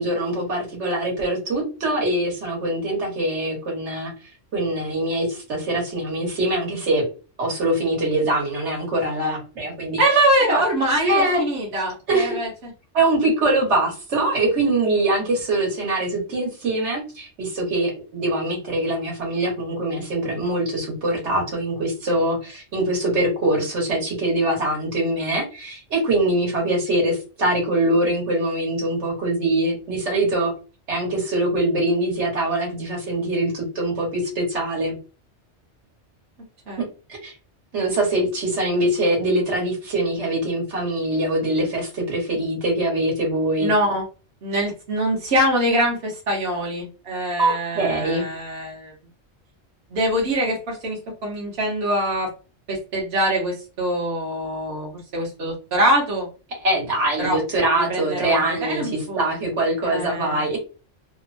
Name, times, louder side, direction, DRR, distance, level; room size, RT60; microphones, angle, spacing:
voice 1, 0.0-4.1 4.5-7.0 7.4-10.0 10.4-10.6 11.0-11.4 12.1-12.4 12.9-30.5 30.9-35.0 37.2-37.3 37.7-43.7 47.4-48.3 56.6-60.6, right 1 dB, 80° right, -1 dB, 1.4 m, -23 dB
voice 2, 10.0-12.5 36.7-36.8 43.6-44.0 44.4-48.9 49.9-52.3 52.7-56.3 57.2-57.4 57.7-59.2 59.8-60.4, right 1 dB, 65° right, -3 dB, 1.1 m, -23 dB
2.9 x 2.0 x 2.5 m, 0.33 s
omnidirectional pair, 1.2 m